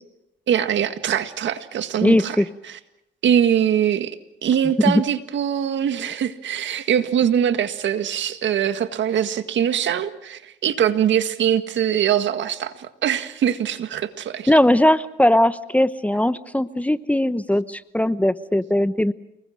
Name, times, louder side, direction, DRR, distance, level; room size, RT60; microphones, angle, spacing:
voice 1, 0.5-2.4 3.2-14.5, right 9 dB, 70° right, 9 dB, 1.8 m, -22 dB
voice 2, 2.0-2.5 4.8-5.0 14.5-19.1, left 1 dB, 5° left, 13 dB, 0.9 m, -19 dB
30.0 x 20.5 x 6.4 m, 0.85 s
cardioid pair, 90°, 20 cm